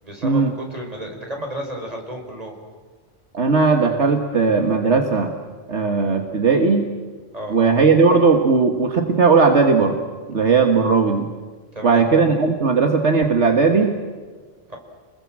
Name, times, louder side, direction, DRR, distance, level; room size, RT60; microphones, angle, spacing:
voice 1, 0.0-2.6 7.3-7.6 11.7-12.1 14.7-14.8, right 1 dB, 30° right, 2 dB, 5.2 m, -32 dB
voice 2, 3.3-5.3 5.7-6.9 7.5-10.0 10.3-11.3 11.8-14.0, right 4 dB, 65° right, 4 dB, 1.8 m, -17 dB
29.5 x 21.0 x 7.5 m, 1.5 s
omnidirectional pair, 1.2 m